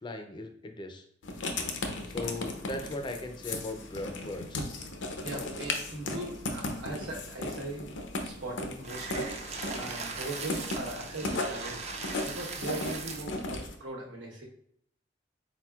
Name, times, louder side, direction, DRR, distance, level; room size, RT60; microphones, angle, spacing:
voice 1, 0.0-1.0 2.1-4.6, left 2 dB, 25° left, 6 dB, 0.5 m, -38 dB
Writing, 1.2-13.8, left 2 dB, 75° left, 0.6 m, -36 dB
voice 2, 5.2-7.9 8.2-11.9 12.2-14.4, right 1 dB, 85° right, -2 dB, 1.1 m, -40 dB
sound 1, 8.8-13.4, right 4 dB, 35° right, 0.5 m, -39 dB
4.3 x 4.1 x 2.3 m, 0.66 s
head